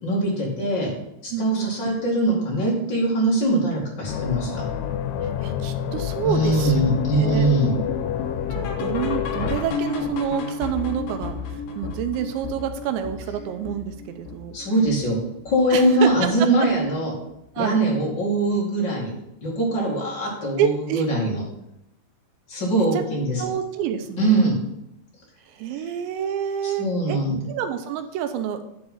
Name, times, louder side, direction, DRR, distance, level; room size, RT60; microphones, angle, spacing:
voice 1, 0.0-0.9 1.2-4.6 6.2-7.8 14.5-15.2 15.4-17.1 17.6-19.1 19.4-21.4 22.5-23.4 24.2-24.6 26.6-27.4, right 1 dB, 35° left, -3 dB, 2.0 m, -22 dB
voice 2, 1.3-2.0 5.4-7.5 8.5-11.4 11.8-14.6 15.7-16.3 17.6-17.8 20.6-21.0 22.8-23.0 23.4-24.5 25.5-27.2 27.5-28.6, right 9 dB, 80° right, 8 dB, 2.9 m, -28 dB
sound 1, 4.1-9.6, left 9 dB, 90° left, 3.1 m, -28 dB
sound 2, 6.7-15.8 16.1-16.4 16.7-16.8 17.3-17.4 17.9-18.0, left 5 dB, 70° left, 2.5 m, -33 dB
10.5 x 4.7 x 5.4 m, 0.82 s
omnidirectional pair, 5.3 m